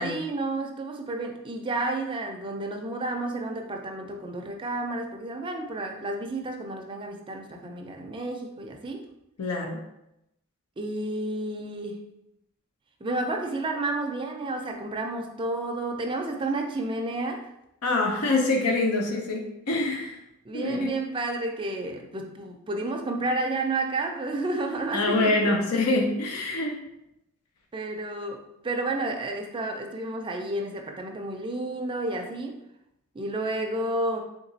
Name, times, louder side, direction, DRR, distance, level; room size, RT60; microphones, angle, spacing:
voice 1, 0.0-9.0 10.8-12.0 13.0-17.5 20.5-25.6 27.7-32.6 33.1-34.2, right 2 dB, 25° right, 2 dB, 0.4 m, -31 dB
voice 2, 9.4-9.8 17.8-20.1 20.5-20.9 24.9-26.8, left 2 dB, 85° left, 1 dB, 0.6 m, -25 dB
3.5 x 2.9 x 2.7 m, 0.85 s
head